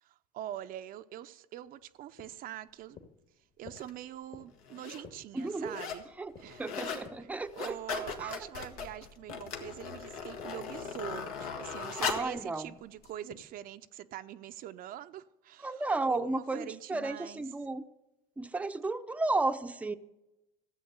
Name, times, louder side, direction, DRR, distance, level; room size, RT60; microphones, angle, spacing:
voice 1, 0.0-3.0 3.6-6.1 6.4-6.9 7.2-17.4, right 12 dB, 50° right, 0.6 m, -44 dB
sound 1, 1.6-9.5 9.9-13.7, left 6 dB, 45° left, 1.8 m, -55 dB
sound 2, 3.8-3.9 4.6-5.0 5.4-6.1 6.4-7.1 7.4-12.4 13.0-13.1, left 6 dB, 85° left, 1.6 m, -38 dB
voice 2, 5.3-5.8 6.2-6.3 6.6-7.8 8.2-8.4 12.0-12.7 15.6-17.8 18.4-20.0, right 2 dB, 10° right, 0.6 m, -33 dB
14.0 x 7.6 x 8.0 m
supercardioid pair, 90°, 18 cm